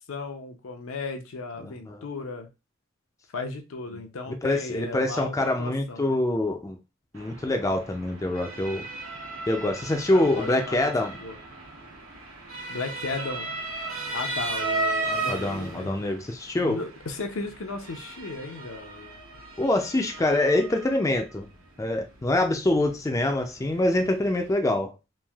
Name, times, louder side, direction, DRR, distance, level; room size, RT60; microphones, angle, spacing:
voice 1, 0.1-2.5 3.3-6.2 10.1-11.4 12.7-13.5 14.1-15.9 16.6-19.1, left 3 dB, 80° left, 0.6 m, -35 dB
voice 2, 1.6-2.0 4.4-6.8 7.1-8.9 9.5-11.2 15.3-16.8 19.6-21.5 21.8-24.9, left 1 dB, 15° left, 0.3 m, -25 dB
Motor vehicle (road) / Siren, 7.1-24.5, right 2 dB, 80° right, 1.0 m, -36 dB
3.1 x 2.5 x 2.3 m
head